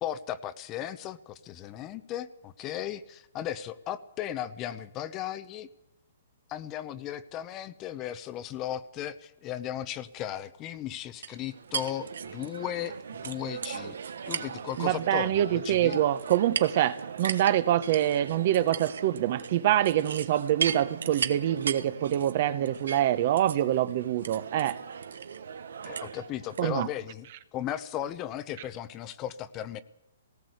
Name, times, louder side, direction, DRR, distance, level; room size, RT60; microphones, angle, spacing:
voice 1, 0.0-5.7 6.5-14.0 14.3-16.0 25.8-27.3 27.5-29.8, left 11 dB, 20° left, 0.8 m, -36 dB
paisaje-sonoro-uem comida tenedor, 11.2-26.7, right 7 dB, 80° right, 1.3 m, -37 dB
voice 2, 14.8-24.8 26.6-26.9, right 12 dB, 40° right, 1.0 m, -25 dB
18.5 x 18.0 x 8.0 m
hypercardioid pair, 160°, 0 cm